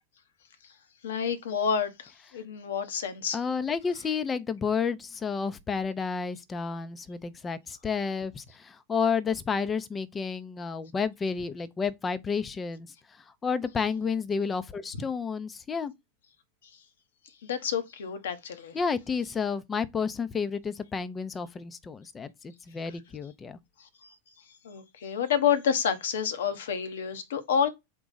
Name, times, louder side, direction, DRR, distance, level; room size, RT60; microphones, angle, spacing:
voice 1, 1.0-3.4 16.6-16.8 17.4-18.8 22.9-23.0 23.8-24.1 24.6-27.7, left 7 dB, 70° left, 0.9 m, -29 dB
voice 2, 3.3-12.9 13.4-15.9 18.7-23.6, left 5 dB, 20° left, 0.6 m, -31 dB
3.8 x 2.3 x 4.0 m
figure-of-eight pair, 90°, 0 cm